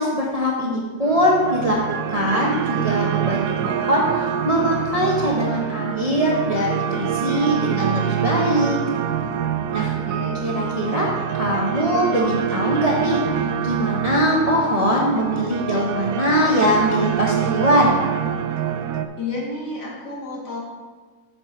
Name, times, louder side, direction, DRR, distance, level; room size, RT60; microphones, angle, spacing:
voice 1, 0.0-8.8 9.7-9.9 10.4-11.1 11.3-13.2 13.6-18.0, equal, 25° right, -3 dB, 0.8 m, -21 dB
sound 1, 1.0-19.1, right 9 dB, 75° right, 0.8 m, -25 dB
voice 2, 10.1-10.5 19.2-20.6, left 2 dB, 65° left, -5 dB, 2.7 m, -31 dB
8.5 x 6.6 x 4.3 m, 1.5 s
omnidirectional pair, 2.0 m